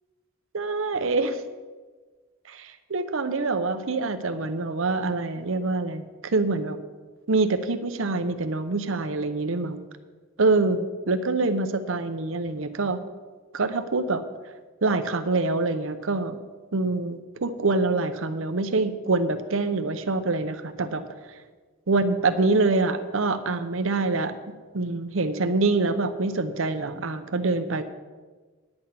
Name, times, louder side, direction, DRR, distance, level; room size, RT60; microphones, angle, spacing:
voice 1, 0.5-1.4 2.5-6.8 7.3-9.8 10.4-13.0 13.5-14.2 14.8-16.4 16.7-21.0 21.9-24.3 24.7-27.8, right 3 dB, 70° right, 10 dB, 0.8 m, -25 dB
9.8 x 8.7 x 5.8 m, 1.4 s
head